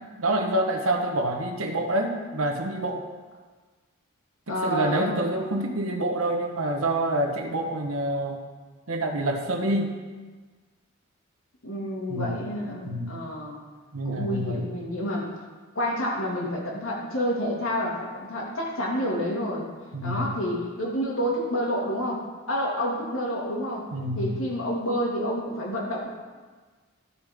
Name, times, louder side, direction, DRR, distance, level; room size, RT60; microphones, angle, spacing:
voice 1, 0.0-3.0 4.5-8.4 8.9-10.0 12.1-12.5 12.8-13.1 13.9-14.6 19.9-20.3 23.9-24.3, right 1 dB, 75° right, 3 dB, 1.3 m, -27 dB
voice 2, 4.5-5.1 11.6-13.6 14.0-15.3 15.7-19.7 20.0-23.9 24.2-26.1, equal, 70° left, -3 dB, 2.3 m, -29 dB
13.5 x 7.0 x 3.7 m, 1.4 s
head